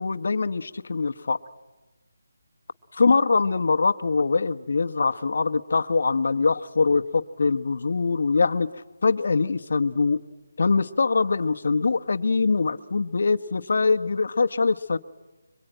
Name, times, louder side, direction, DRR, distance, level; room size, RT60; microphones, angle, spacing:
voice 1, 0.0-1.4 3.0-8.7 9.0-10.2 10.6-15.0, left 4 dB, 55° left, 11 dB, 1.1 m, -23 dB
26.0 x 24.0 x 9.0 m, 1.1 s
hypercardioid pair, 175°, 0 cm